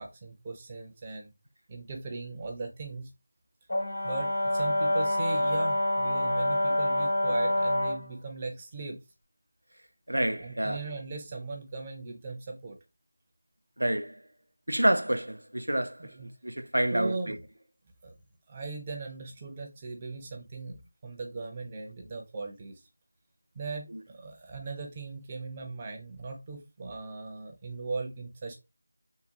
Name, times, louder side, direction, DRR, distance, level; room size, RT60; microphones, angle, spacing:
voice 1, 0.0-1.3 1.7-3.1 4.0-9.0 10.3-12.8 16.0-16.3 16.9-17.4 18.0-18.1 18.5-22.8 23.5-28.5, right 3 dB, 20° right, 0.6 m, -38 dB
Brass instrument, 3.7-8.1, left 1 dB, 75° left, 2.2 m, -27 dB
voice 2, 10.1-10.8 13.8-14.2 14.7-16.1 16.4-17.4, right 1 dB, 90° right, 0.5 m, -28 dB
3.7 x 2.2 x 2.8 m
figure-of-eight pair, 170°, 0 cm